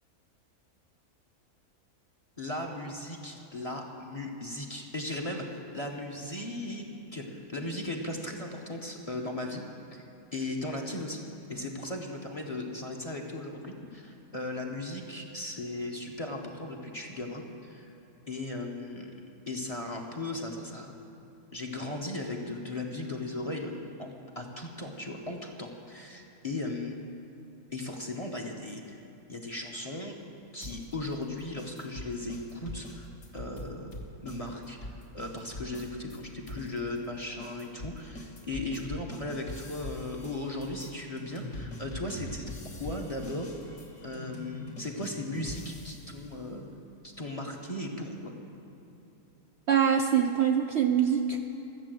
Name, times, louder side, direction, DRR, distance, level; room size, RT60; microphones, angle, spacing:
voice 1, 2.4-9.6 9.9-10.1 10.3-17.9 18.3-19.1 19.5-20.9 21.5-23.7 24.0-27.0 27.7-29.0 29.3-30.2 30.5-34.0 34.2-42.5 42.8-43.5 44.0-46.6 47.0-48.3, left 2 dB, 30° left, 2 dB, 0.8 m, -37 dB
sound 1, 30.6-36.2 36.5-46.2, left 1 dB, 60° left, 1.8 m, -43 dB
voice 2, 49.7-51.4, right 8 dB, 65° right, 3 dB, 0.7 m, -24 dB
13.0 x 7.5 x 7.6 m, 2.9 s
omnidirectional pair, 1.5 m